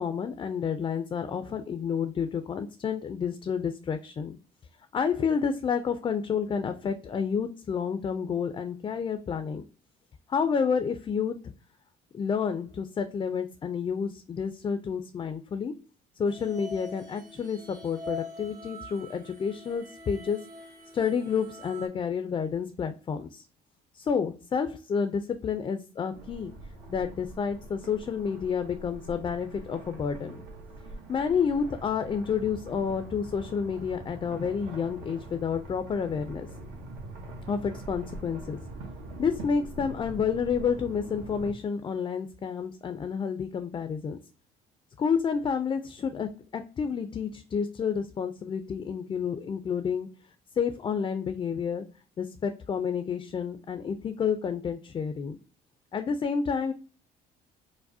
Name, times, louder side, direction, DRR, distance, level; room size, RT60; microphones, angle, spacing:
voice 1, 0.0-4.4 4.9-9.6 10.3-11.4 12.1-15.7 16.2-20.4 20.9-23.4 23.9-26.5 26.9-30.4 31.1-36.5 37.5-38.6 39.2-44.2 45.0-50.2 50.6-51.8 52.2-55.4 55.9-56.7, left 6 dB, 30° left, 9 dB, 0.3 m, -30 dB
sound 1, 16.2-21.9, left 2 dB, 55° right, 1.5 m, -44 dB
sound 2, 26.1-41.5, right 2 dB, 80° right, 0.9 m, -43 dB
4.7 x 2.0 x 2.6 m, 0.35 s
cardioid pair, 110°, 17 cm